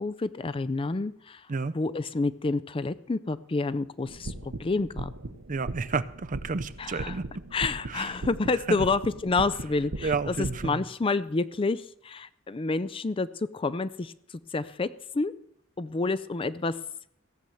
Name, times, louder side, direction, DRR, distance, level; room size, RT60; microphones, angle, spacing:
voice 1, 0.0-1.5 1.7-5.1 6.8-7.2 7.5-14.1 14.5-15.3 15.8-16.8, left 3 dB, 25° left, 15 dB, 0.4 m, -29 dB
sound 1, 4.1-10.7, right 2 dB, 85° right, 1.0 m, -38 dB
voice 2, 5.5-7.2 7.9-8.1 8.7-8.8 10.0-10.8, right 4 dB, 40° right, 13 dB, 0.5 m, -30 dB
15.5 x 7.1 x 7.7 m, 0.72 s
head